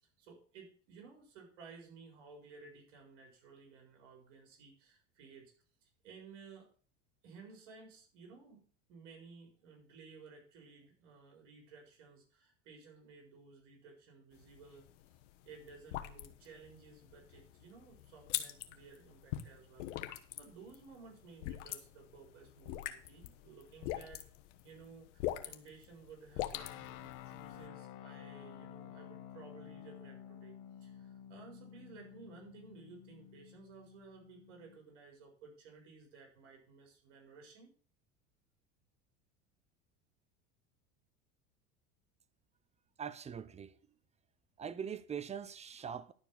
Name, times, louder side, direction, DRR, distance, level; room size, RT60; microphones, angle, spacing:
voice 1, 0.2-5.5 6.0-6.7 7.2-14.9 15.4-24.2 24.6-30.5 30.8-37.7, right 5 dB, 75° right, 4.4 m, -56 dB
sound 1, 14.3-27.7, left 14 dB, 80° left, 1.2 m, -43 dB
sound 2, 26.5-34.8, left 10 dB, 55° left, 1.1 m, -52 dB
voice 2, 43.0-43.7 44.6-46.1, right 7 dB, 20° right, 0.7 m, -42 dB
11.5 x 4.7 x 7.3 m
supercardioid pair, 110°, 36 cm